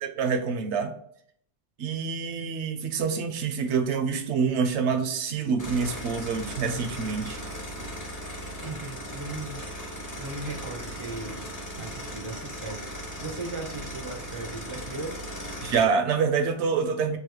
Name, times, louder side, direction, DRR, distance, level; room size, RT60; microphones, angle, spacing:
voice 1, 0.0-0.9 1.8-7.4 15.6-17.2, right 5 dB, 75° right, 7 dB, 0.9 m, -26 dB
sound 1, 5.6-15.9, equal, 20° left, 0.7 m, -37 dB
voice 2, 8.6-9.6 10.1-11.5 11.8-15.2, right 3 dB, 40° right, 3 dB, 0.4 m, -37 dB
3.9 x 2.7 x 3.0 m, 0.65 s
omnidirectional pair, 1.2 m